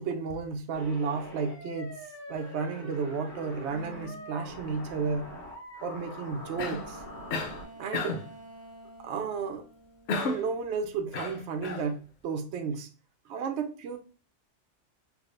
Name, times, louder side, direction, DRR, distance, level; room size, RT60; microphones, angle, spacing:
voice 1, 0.0-2.0 2.3-5.3 5.8-7.0 7.8-8.2 9.0-9.6 10.2-12.9 13.3-14.0, right 5 dB, 70° right, 0.8 m, -33 dB
sound 1, 0.7-7.7, left 1 dB, 90° left, 1.6 m, -44 dB
sound 2, 3.7-4.3 6.3-10.9 11.2-12.0, right 1 dB, 15° left, 0.6 m, -50 dB
Cough, 6.6-6.9 7.3-7.6 7.9-8.3 10.1-10.5 11.1-11.9, left 3 dB, 70° left, 0.8 m, -32 dB
3.4 x 3.3 x 2.5 m
omnidirectional pair, 1.3 m